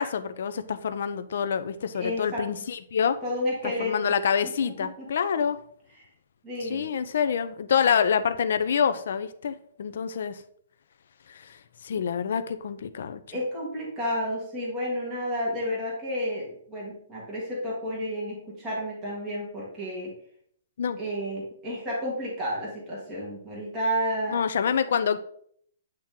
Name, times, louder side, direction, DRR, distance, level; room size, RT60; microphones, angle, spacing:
voice 1, 0.0-3.2 3.6-5.6 6.6-10.4 11.3-11.6 11.8-13.2 20.8-21.0 24.3-25.2, left 7 dB, 60° left, 11 dB, 0.5 m, -27 dB
voice 2, 1.9-2.4 3.2-4.1 4.8-5.1 6.0-6.1 6.4-6.9 13.3-20.1 21.0-24.4, equal, 10° right, -6 dB, 1.5 m, -31 dB
8.8 x 2.9 x 3.6 m, 0.64 s
hypercardioid pair, 170°, 0 cm